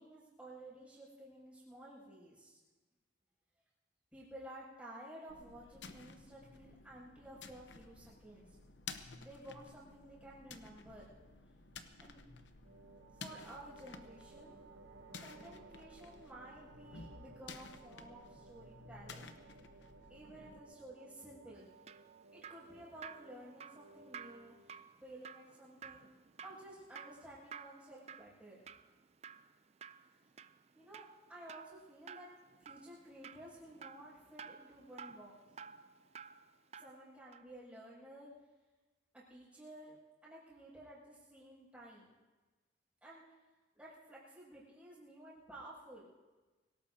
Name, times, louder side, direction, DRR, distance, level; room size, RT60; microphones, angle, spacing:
voice 1, 0.0-2.6 4.1-8.4 9.2-11.0 12.0-12.2 13.1-19.3 20.1-21.7 22.3-26.1 26.4-28.6 30.7-32.3 32.6-35.4 36.8-38.3 39.1-40.0 40.2-42.1 43.0-43.2 43.7-46.1, right 1 dB, 5° right, -8 dB, 6.7 m, -54 dB
sound 1, 5.3-20.6, left 4 dB, 65° left, 0.9 m, -53 dB
sound 2, 12.6-24.9, right 4 dB, 80° right, 0.9 m, -59 dB
Drip, 21.6-37.0 37.3-37.5, right 6 dB, 35° right, 0.4 m, -53 dB
25.0 x 17.5 x 2.8 m, 1.3 s
head